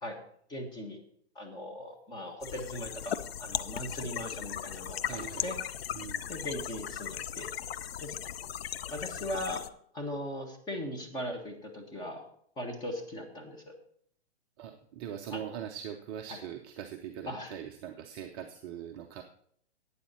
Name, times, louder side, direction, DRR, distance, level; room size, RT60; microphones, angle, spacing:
voice 1, 0.5-1.0 1.3-5.6 6.3-7.5 8.0-8.1 8.9-9.6 9.9-12.2 12.6-13.7 15.3-15.6 16.3-16.4 17.3-17.5, left 1 dB, 10° left, 2 dB, 1.6 m, -39 dB
sound 1, 2.4-9.7, left 9 dB, 60° left, 0.6 m, -37 dB
voice 2, 5.1-5.5 5.9-6.2 14.6-19.2, right 9 dB, 20° right, 3 dB, 0.5 m, -41 dB
12.0 x 9.1 x 4.3 m, 0.64 s
hypercardioid pair, 145°, 34 cm